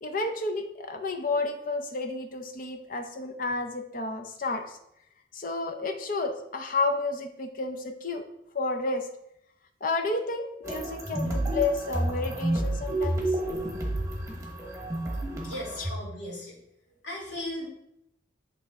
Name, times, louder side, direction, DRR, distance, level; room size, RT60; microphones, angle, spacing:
voice 1, 0.0-4.8 5.3-8.2 8.5-9.1 9.8-13.2 15.8-15.9, left 3 dB, 45° left, 6 dB, 0.6 m, -31 dB
sound 1, 10.6-15.9, right 1 dB, 15° right, 1.1 m, -30 dB
voice 2, 15.4-16.6 17.0-17.7, left 1 dB, 75° left, -4 dB, 2.3 m, -37 dB
8.3 x 3.2 x 3.6 m, 0.80 s
head